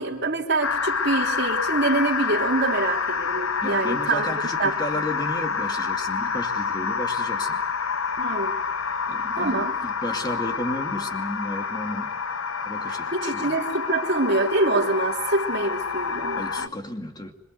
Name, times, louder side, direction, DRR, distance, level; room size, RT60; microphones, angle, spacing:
voice 1, 0.0-4.3 4.6-5.0 8.2-8.6 9.4-9.7 12.8-16.7, right 2 dB, 55° right, 3.5 m, -25 dB
sound 1, 0.6-16.7, left 5 dB, 90° left, 1.0 m, -28 dB
voice 2, 3.6-7.6 9.1-12.1 12.6-13.5 16.4-17.3, left 1 dB, 20° left, 2.5 m, -33 dB
26.5 x 22.5 x 8.1 m
head